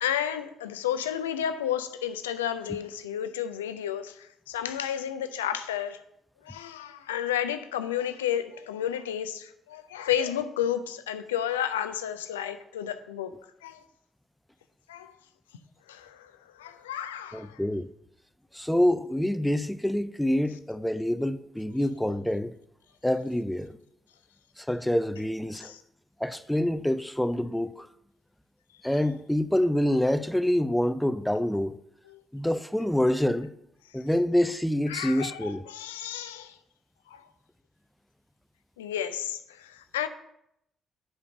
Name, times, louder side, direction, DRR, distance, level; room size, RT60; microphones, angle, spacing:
voice 1, 0.0-6.0 6.4-13.3 13.6-13.8 14.9-15.2 15.9-17.6 25.6-25.8 32.1-32.2 33.9-34.0 34.9-36.6 37.1-37.3 38.8-40.1, left 10 dB, 75° left, 0.4 m, -32 dB
voice 2, 17.3-17.9 18.5-22.5 23.0-23.8 24.6-25.7 26.2-27.9 28.8-31.8 32.3-33.5 33.9-35.6, left 1 dB, 5° left, 0.5 m, -26 dB
7.1 x 5.1 x 6.8 m
figure-of-eight pair, 40°, 0 cm